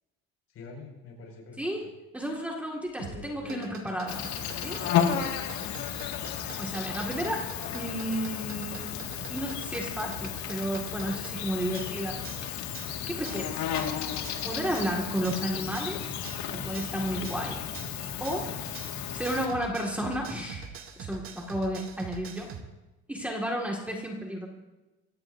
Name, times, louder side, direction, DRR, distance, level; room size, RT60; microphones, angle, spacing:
voice 1, 0.5-1.6 3.0-3.7 5.2-6.0, left 5 dB, 50° left, 1 dB, 5.7 m, -45 dB
voice 2, 2.1-4.3 4.6-4.8 5.1-5.3 6.6-7.5 7.7-9.0 9.3-12.2 13.1-13.6 14.4-16.2 16.5-17.6 18.2-18.5 19.1-22.5 23.1-24.5, equal, 5° right, -1 dB, 1.9 m, -32 dB
sound 1, 2.9-22.6, right 7 dB, 45° right, 1.6 m, -46 dB
Insect, 4.1-19.5, left 9 dB, 75° left, 1.9 m, -33 dB
25.5 x 16.5 x 2.6 m, 1.1 s
cardioid pair, 150°, 29 cm